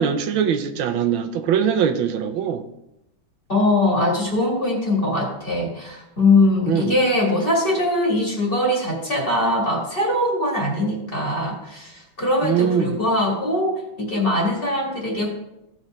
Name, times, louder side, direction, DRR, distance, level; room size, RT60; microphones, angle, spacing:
voice 1, 0.0-2.6 6.7-7.0 12.4-13.0, right 8 dB, 85° right, 1.6 m, -22 dB
voice 2, 3.5-15.3, left 1 dB, 30° left, 2.1 m, -21 dB
16.0 x 5.4 x 3.2 m
omnidirectional pair, 2.1 m